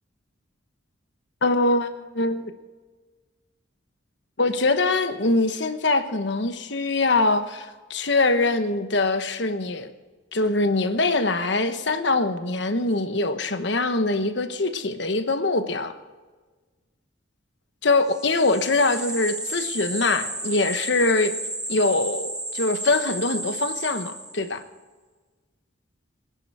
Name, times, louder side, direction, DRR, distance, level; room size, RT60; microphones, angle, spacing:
voice 1, 1.4-2.5 4.4-9.9 10.3-15.9 17.8-21.3 21.7-24.6, left 2 dB, 60° left, 9 dB, 1.1 m, -23 dB
sound 1, 18.1-24.6, right 1 dB, 5° right, 0.4 m, -33 dB
23.5 x 10.5 x 4.8 m, 1.3 s
head